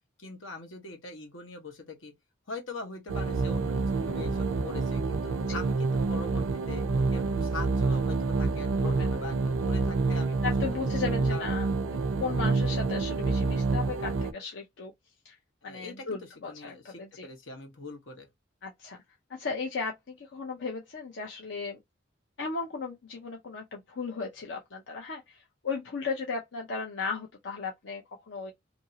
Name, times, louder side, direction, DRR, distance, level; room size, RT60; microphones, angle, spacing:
voice 1, 0.2-2.1 2.5-6.8 7.1-10.7 11.1-11.5 15.6-18.3, left 3 dB, 85° left, 1.1 m, -42 dB
sound 1, 3.1-14.3, right 3 dB, 85° right, 0.4 m, -28 dB
voice 2, 10.4-14.9 15.2-15.4 15.6-17.3 18.6-19.0 19.3-21.8 22.4-28.5, left 4 dB, 65° left, 0.6 m, -36 dB
2.9 x 2.6 x 2.7 m
head